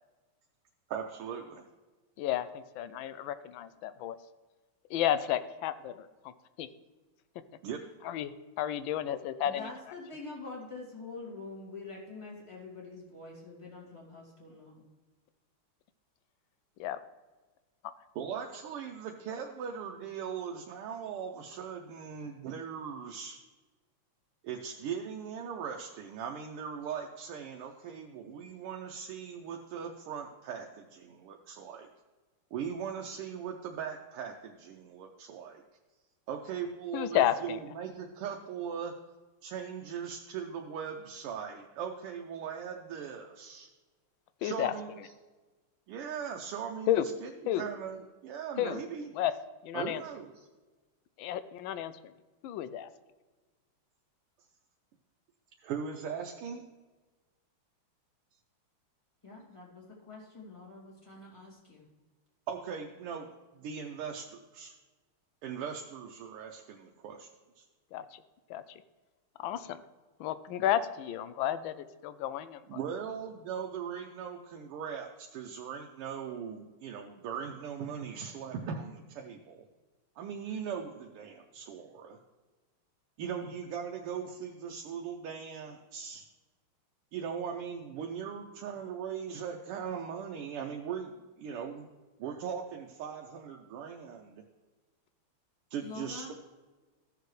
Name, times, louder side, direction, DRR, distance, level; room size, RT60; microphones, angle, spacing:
voice 1, 0.9-1.7 7.6-7.8 18.1-23.4 24.4-31.9 32.5-35.6 36.3-39.0 39.4-43.7 44.4-44.9 45.9-47.3 47.6-49.1 49.7-50.5 55.6-56.7 62.5-64.7 65.4-67.3 67.6-67.7 72.7-79.7 80.2-82.2 83.2-86.2 87.1-91.9 92.2-94.4 95.7-96.3, right 7 dB, 85° right, 1 dB, 1.7 m, -39 dB
voice 2, 2.2-4.2 4.9-6.3 6.6-6.7 8.0-8.3 8.6-9.7 16.8-17.0 17.8-17.9 36.9-37.6 44.4-44.7 46.9-47.1 47.5-47.7 48.6-48.8 49.1-49.3 49.6-50.0 51.2-52.1 52.4-52.9 67.9-68.2 68.5-68.8 69.4-69.8 70.2-72.8, left 11 dB, 75° left, 13 dB, 1.2 m, -32 dB
voice 3, 9.4-14.8 59.2-61.9 95.8-96.3, left 3 dB, 15° left, -5 dB, 2.3 m, -45 dB
15.0 x 6.8 x 3.2 m, 1.3 s
omnidirectional pair, 2.4 m